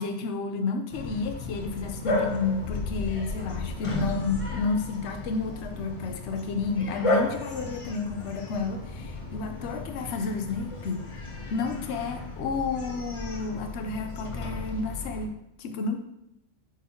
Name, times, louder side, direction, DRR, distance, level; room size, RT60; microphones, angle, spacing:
voice 1, 0.0-11.1 11.5-16.0, left 4 dB, 55° left, 6 dB, 0.9 m, -31 dB
Bark, 0.9-15.3, left 2 dB, 35° left, 0.5 m, -34 dB
8.3 x 4.4 x 2.8 m, 0.86 s
omnidirectional pair, 1.6 m